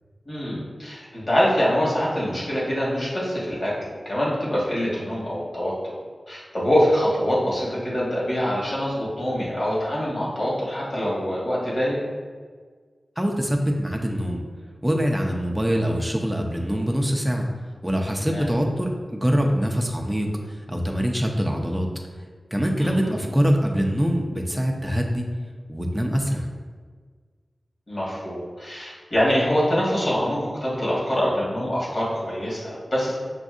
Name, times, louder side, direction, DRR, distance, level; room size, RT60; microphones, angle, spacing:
voice 1, 0.2-5.7 6.3-12.0 18.3-18.5 22.8-23.2 27.9-33.1, equal, 55° left, -6 dB, 1.5 m, -24 dB
voice 2, 13.2-14.4 14.8-17.5 17.8-21.9 22.5-25.3 25.7-26.5, equal, 10° right, 0 dB, 0.5 m, -24 dB
6.0 x 2.6 x 2.5 m, 1.5 s
wide cardioid pair, 60°, 0 cm